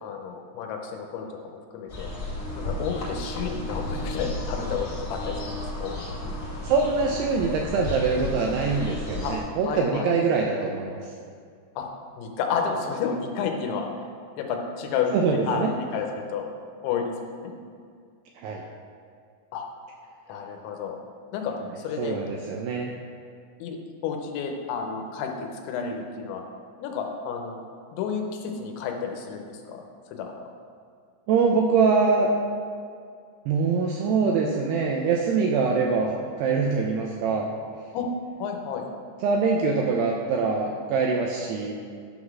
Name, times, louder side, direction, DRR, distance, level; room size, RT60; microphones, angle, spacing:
voice 1, 0.0-2.1 2.6-5.5 5.8-5.9 9.2-9.3 9.7-10.1 11.8-11.9 12.2-13.9 14.4-15.1 15.5-15.7 15.9-16.5 16.8-17.2 17.4-17.5 19.5-19.7 20.3-21.0 21.3-22.2 23.6-23.8 24.0-26.4 26.8-27.6 27.9-29.8 30.1-30.3 37.9-38.9, left 6 dB, 90° left, 2 dB, 3.1 m, -31 dB
sound 1, 1.9-9.4, left 1 dB, 30° left, 2.0 m, -33 dB
voice 2, 6.6-11.0 15.1-15.7 18.4-18.6 22.0-22.9 31.3-32.3 33.5-36.1 36.4-37.5 39.2-41.8, right 4 dB, 85° right, 0 dB, 2.4 m, -24 dB
11.0 x 4.0 x 6.0 m, 2.2 s
omnidirectional pair, 5.4 m